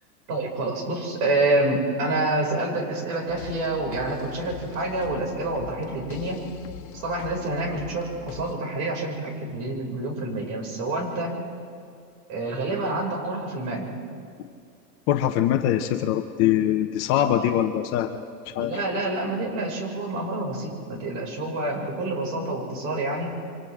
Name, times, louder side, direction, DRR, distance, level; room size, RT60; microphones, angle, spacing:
voice 1, 0.3-6.5 6.9-11.4 12.3-13.9 17.2-17.5 18.6-23.3, right 2 dB, 50° right, 0 dB, 6.0 m, -27 dB
sound 1, 3.3-8.6, left 12 dB, 55° left, 1.5 m, -42 dB
voice 2, 15.1-18.2 18.5-18.8, left 11 dB, 30° left, 6 dB, 0.8 m, -23 dB
29.0 x 24.5 x 3.7 m, 2.3 s
hypercardioid pair, 140°, 48 cm